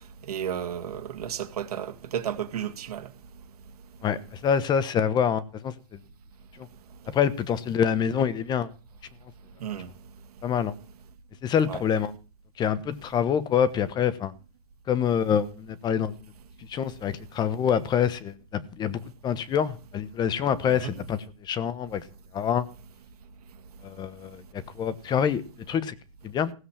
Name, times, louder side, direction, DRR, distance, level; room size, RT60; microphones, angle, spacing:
voice 1, 0.3-3.1 9.6-9.9 11.7-11.8 20.7-20.9, right 9 dB, 85° right, 2.3 m, -33 dB
voice 2, 4.4-5.7 7.1-8.7 10.4-10.7 11.4-12.1 12.6-14.3 14.9-16.1 16.7-21.2 21.5-22.0 22.3-22.6 23.8-24.4 24.8-25.9 26.2-26.5, left 8 dB, 20° left, 1.0 m, -26 dB
16.0 x 7.9 x 7.3 m
supercardioid pair, 145°, 19 cm